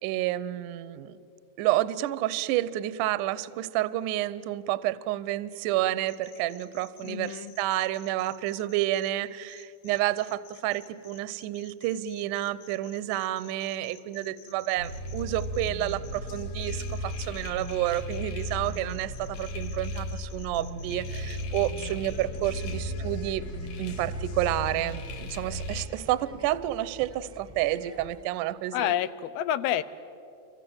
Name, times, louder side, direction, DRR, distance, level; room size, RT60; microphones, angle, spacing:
voice 1, 0.0-1.2 1.6-23.4 23.8-28.9, right 14 dB, 80° right, 16 dB, 1.9 m, -30 dB
sound 1, 6.1-9.1 9.5-22.7, left 9 dB, 45° left, 2.3 m, -53 dB
voice 2, 7.0-7.5 28.7-29.8, left 12 dB, 80° left, 15 dB, 2.6 m, -28 dB
sound 2, 14.8-25.9, left 1 dB, 65° left, 3.3 m, -35 dB
sound 3, 21.1-28.2, left 1 dB, 5° right, 1.2 m, -49 dB
28.0 x 24.5 x 7.8 m, 2.8 s
omnidirectional pair, 4.4 m